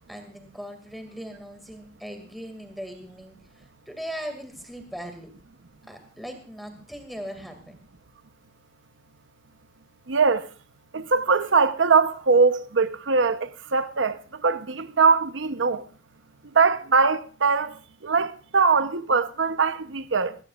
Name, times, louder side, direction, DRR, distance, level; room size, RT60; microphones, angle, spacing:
voice 1, 0.1-5.3 5.9-7.8, equal, ahead, 2.3 m, -39 dB
voice 2, 10.1-10.5 10.9-15.8 16.5-17.7 18.0-20.4, right 4 dB, 85° right, 0.9 m, -22 dB
19.0 x 17.5 x 2.5 m
head